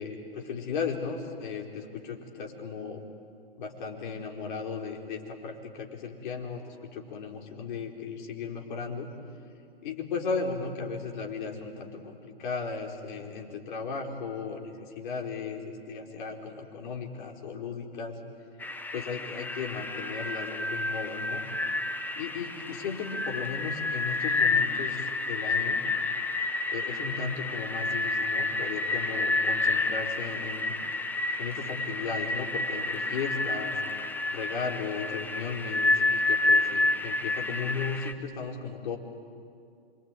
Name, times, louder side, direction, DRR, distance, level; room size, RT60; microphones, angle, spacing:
voice 1, 0.0-3.0 3.6-9.1 9.8-18.2 18.9-21.4 22.2-25.8 26.7-30.8 31.4-33.8 34.3-39.0, left 5 dB, 50° left, 1 dB, 4.4 m, -36 dB
sound 1, 18.6-38.1, left 3 dB, 5° left, 0.9 m, -29 dB
26.5 x 24.0 x 9.1 m, 2.5 s
hypercardioid pair, 130°, 31 cm